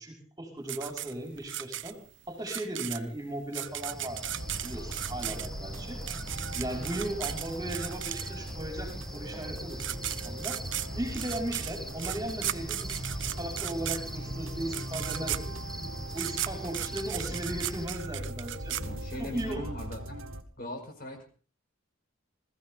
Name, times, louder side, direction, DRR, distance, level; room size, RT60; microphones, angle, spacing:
voice 1, 0.0-2.0 2.3-4.2 4.6-6.0 6.5-13.1 13.4-15.6 16.1-18.8 19.2-19.7, right 1 dB, 20° right, 1 dB, 5.3 m, -37 dB
sound 1, 0.7-8.6 9.5-9.6 9.8-19.4, right 13 dB, 60° right, 0.7 m, -36 dB
Cricket, 3.6-17.9, equal, ahead, 1.2 m, -41 dB
sound 2, 4.2-20.4, right 1 dB, 75° right, 1.8 m, -41 dB
voice 2, 18.8-20.2 20.6-21.3, left 1 dB, 45° left, 4 dB, 5.0 m, -39 dB
21.0 x 15.0 x 3.9 m, 0.39 s
head